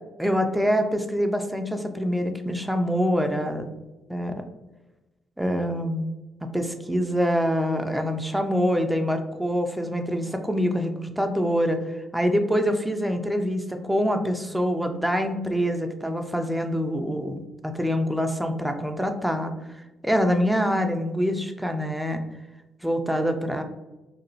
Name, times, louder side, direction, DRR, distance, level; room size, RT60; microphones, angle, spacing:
voice 1, 0.2-3.7 4.1-4.4 5.4-6.1 6.4-19.5 20.0-22.2 22.8-23.6, equal, 5° right, 5 dB, 0.4 m, -25 dB
3.0 x 2.1 x 2.6 m, 1.0 s
hypercardioid pair, 55°, 0 cm